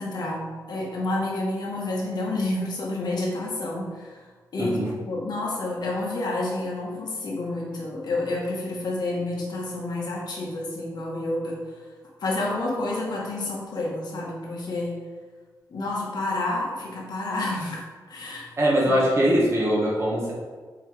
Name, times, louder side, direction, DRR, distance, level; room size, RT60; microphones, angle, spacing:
voice 1, 0.0-4.2 4.5-4.8 5.0-11.8 12.2-15.0 15.7-18.5 18.8-19.0, left 2 dB, 70° left, -3 dB, 1.6 m, -29 dB
voice 2, 4.6-4.9 18.6-20.3, equal, 40° right, -5 dB, 1.8 m, -22 dB
7.1 x 4.8 x 3.5 m, 1.4 s
wide cardioid pair, 130°, 7 cm